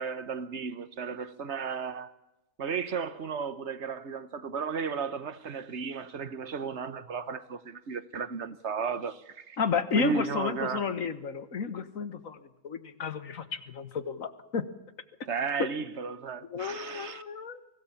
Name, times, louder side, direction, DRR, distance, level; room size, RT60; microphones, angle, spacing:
voice 1, 0.0-2.1 2.6-9.6 9.9-10.8 15.3-17.2, right 6 dB, 55° right, 1.4 m, -34 dB
voice 2, 9.6-14.6 16.5-17.6, left 5 dB, 75° left, 1.9 m, -32 dB
24.5 x 18.0 x 7.2 m
omnidirectional pair, 1.4 m